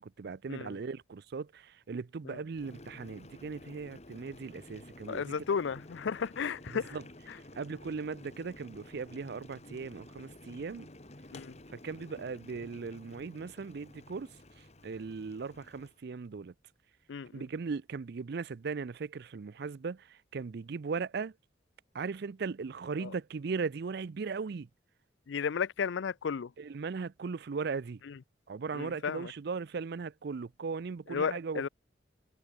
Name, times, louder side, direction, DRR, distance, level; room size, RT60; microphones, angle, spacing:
voice 1, 0.0-5.3 6.7-7.0 7.5-10.9 11.7-14.3 14.8-16.5 17.3-21.3 21.9-24.7 26.6-28.0 28.5-31.6, right 5 dB, 60° right, 0.4 m, -38 dB
Boiling, 2.5-16.0, left 1 dB, 35° left, 2.0 m, -52 dB
voice 2, 5.1-7.0 11.3-11.6 17.1-17.4 23.0-23.1 25.3-26.5 28.1-28.2 28.7-29.3 31.1-31.7, left 6 dB, 75° left, 0.4 m, -34 dB
head